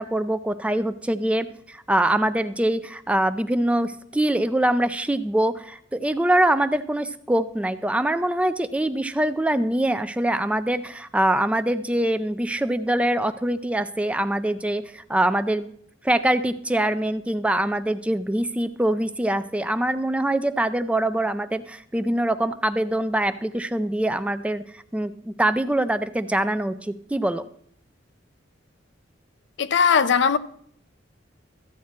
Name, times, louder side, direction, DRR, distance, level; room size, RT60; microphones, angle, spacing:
voice 1, 0.0-15.7 16.0-24.6 24.9-27.5, right 1 dB, 5° right, 0.4 m, -24 dB
voice 2, 29.6-30.4, left 6 dB, 65° left, 0.5 m, -19 dB
14.0 x 8.4 x 4.4 m
head